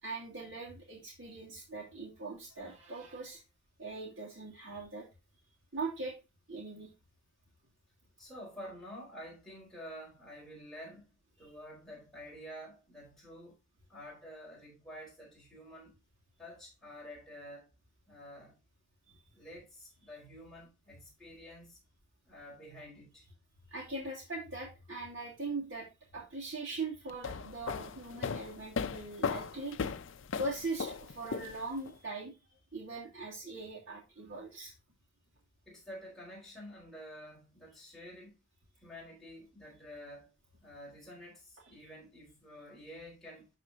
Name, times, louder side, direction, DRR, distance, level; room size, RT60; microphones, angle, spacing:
voice 1, 0.0-3.4 3.8-5.1 5.7-6.1 6.5-6.9 19.1-19.2 23.7-29.8 30.4-32.4 32.7-34.7, right 3 dB, 65° right, 2.6 m, -41 dB
voice 2, 8.2-13.6 13.9-16.0 16.4-17.7 18.1-18.6 19.3-21.8 22.3-23.3 35.7-38.4 38.8-40.3 40.6-43.5, equal, ahead, 4.1 m, -49 dB
sound 1, 27.1-31.9, left 5 dB, 65° left, 0.5 m, -37 dB
12.0 x 4.2 x 2.8 m
head